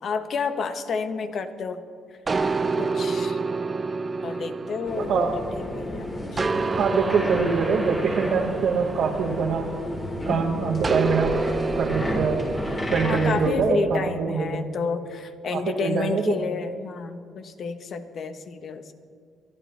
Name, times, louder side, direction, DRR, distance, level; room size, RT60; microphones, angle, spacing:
voice 1, 0.0-1.8 2.8-3.4 4.2-6.5 13.0-18.9, left 5 dB, 60° left, 8 dB, 1.1 m, -30 dB
sound 1, 2.3-5.8 6.4-10.1 10.8-13.5, right 4 dB, 30° right, 0.5 m, -29 dB
sound 2, 4.8-13.5, left 1 dB, 25° left, 4.1 m, -32 dB
voice 2, 5.0-5.3 6.8-9.7 10.3-11.4 11.7-12.4 12.9-14.6 15.5-16.3, right 5 dB, 70° right, -1 dB, 1.2 m, -24 dB
24.0 x 12.5 x 3.4 m, 2.2 s
cardioid pair, 90°, 0 cm